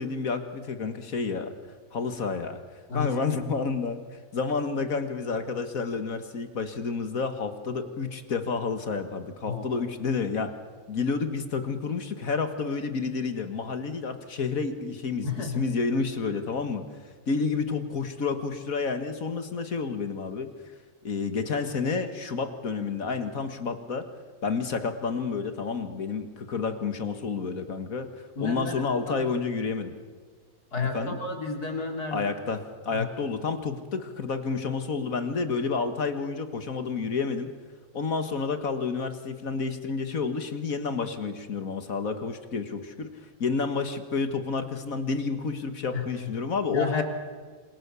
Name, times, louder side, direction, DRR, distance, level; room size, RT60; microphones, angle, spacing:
voice 1, 0.0-1.5 1.9-2.6 2.9-4.0 4.3-10.5 10.9-16.8 17.3-20.5 21.0-24.1 24.4-28.1 28.4-29.9 30.9-31.2 32.1-37.5 37.9-43.1 43.4-47.0, left 4 dB, 60° left, 8 dB, 2.0 m, -30 dB
voice 2, 9.4-9.8 15.2-15.7 28.3-29.2 30.7-32.3 32.9-33.1 45.9-46.3 46.7-47.0, left 4 dB, 75° left, 2 dB, 3.9 m, -32 dB
27.0 x 26.0 x 7.0 m, 1.5 s
omnidirectional pair, 1.6 m